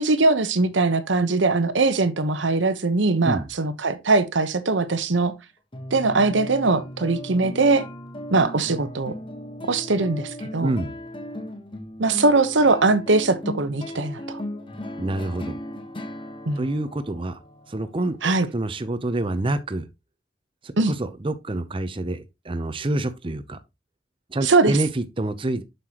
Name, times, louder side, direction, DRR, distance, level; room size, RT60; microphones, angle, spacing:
voice 1, 0.0-5.3 5.9-7.8 8.3-9.1 9.6-10.7 12.0-14.4 16.5-16.6 18.2-18.5 20.8-20.9 24.4-24.8, right 3 dB, 85° right, 1.0 m, -21 dB
sound 1, 5.7-18.5, left 1 dB, 30° left, 1.3 m, -37 dB
voice 2, 10.6-11.0 15.0-15.6 16.6-17.4 17.7-19.8 20.6-23.6 24.3-25.6, right 2 dB, 30° right, 0.7 m, -27 dB
7.5 x 6.8 x 2.9 m
head